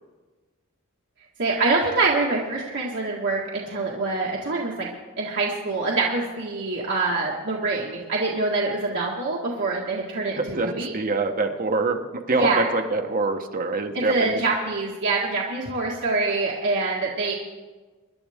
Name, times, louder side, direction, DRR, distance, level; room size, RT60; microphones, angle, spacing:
voice 1, 1.4-4.9 5.2-10.9 12.4-12.7 13.9-17.3, right 3 dB, 55° right, -4 dB, 1.8 m, -25 dB
voice 2, 10.3-14.4, right 3 dB, 40° right, 4 dB, 1.2 m, -25 dB
26.0 x 11.0 x 3.7 m, 1.3 s
head